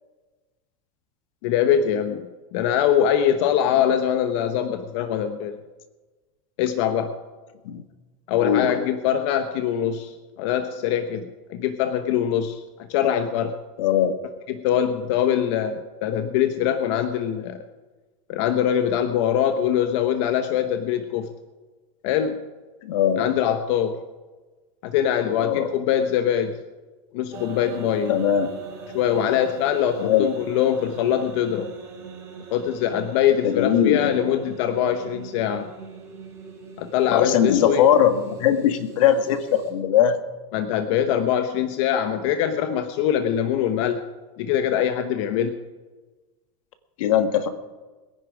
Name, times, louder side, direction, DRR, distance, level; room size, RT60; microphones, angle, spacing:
voice 1, 1.4-5.6 6.6-7.2 8.3-13.5 14.5-17.6 18.3-21.3 22.0-22.4 23.2-24.0 24.8-26.6 27.1-28.1 28.9-31.7 32.5-35.7 36.8-37.9 40.5-44.0 44.4-45.6, left 9 dB, 60° left, 7 dB, 1.1 m, -23 dB
voice 2, 8.4-8.7 13.8-14.2 22.8-23.3 25.4-25.7 28.1-28.5 30.0-30.3 33.4-34.1 37.1-40.2 47.0-47.5, left 9 dB, 80° left, 9 dB, 1.6 m, -20 dB
sound 1, 27.3-39.7, right 5 dB, 15° right, 3.8 m, -41 dB
22.0 x 10.5 x 5.0 m, 1.3 s
supercardioid pair, 150°, 17 cm